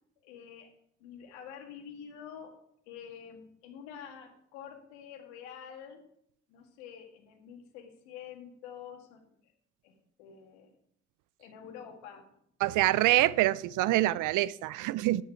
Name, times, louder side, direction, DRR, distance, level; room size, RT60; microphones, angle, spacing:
voice 1, 0.2-0.7 1.0-2.5 2.9-6.0 6.5-9.5 9.8-10.7 11.4-12.3, left 8 dB, 85° left, 1.8 m, -47 dB
voice 2, 12.6-15.2, right 16 dB, 70° right, 0.5 m, -25 dB
11.5 x 9.9 x 4.6 m
hypercardioid pair, 50°, 33 cm